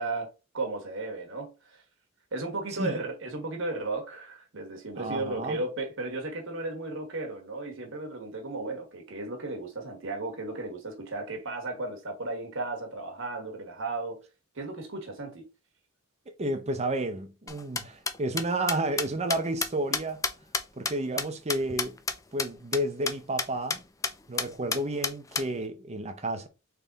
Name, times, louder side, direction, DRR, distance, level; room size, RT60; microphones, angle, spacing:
voice 1, 0.0-1.8 2.3-14.2 14.5-15.5, right 2 dB, 65° right, 1.2 m, -35 dB
voice 2, 2.7-3.0 4.9-5.6 16.4-20.2 20.8-22.0 22.3-23.8 24.3-26.5, right 1 dB, 30° right, 0.7 m, -31 dB
sound 1, 17.5-22.1 22.4-22.5 22.7-22.8 23.1-23.2 23.4-23.8 24.0-24.1 24.4-25.4, left 4 dB, 15° left, 0.4 m, -29 dB
3.5 x 3.4 x 3.9 m
head